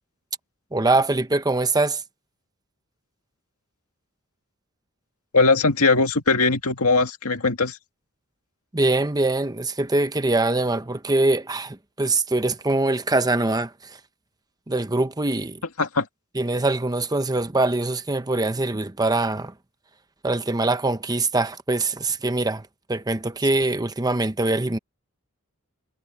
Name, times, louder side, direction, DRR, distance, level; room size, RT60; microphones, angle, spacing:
voice 1, 0.7-2.0 8.7-14.0 14.7-15.6 16.3-19.5 20.2-24.8, right 2 dB, 20° right, 0.9 m, -23 dB
voice 2, 5.3-7.8 15.8-16.1, left 3 dB, 85° left, 2.0 m, -20 dB
head